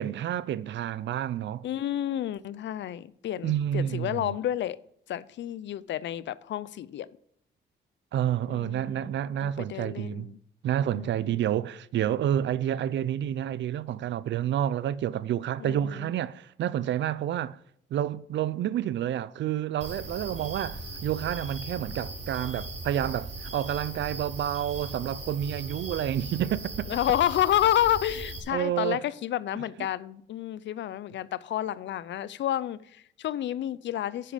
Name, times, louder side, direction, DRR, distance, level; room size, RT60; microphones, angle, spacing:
voice 1, 0.0-1.7 3.4-4.4 8.1-10.3 10.6-17.6 17.9-26.9 28.5-29.0 29.8-29.9, right 11 dB, 65° right, 0.6 m, -29 dB
voice 2, 1.6-4.8 5.1-7.1 8.5-9.1 9.4-10.4 10.9-11.5 15.6-16.1 26.9-34.3, left 12 dB, 65° left, 0.6 m, -30 dB
sound 1, 19.8-28.4, right 2 dB, 35° right, 3.7 m, -39 dB
10.0 x 9.0 x 5.1 m
cardioid pair, 90°, 20 cm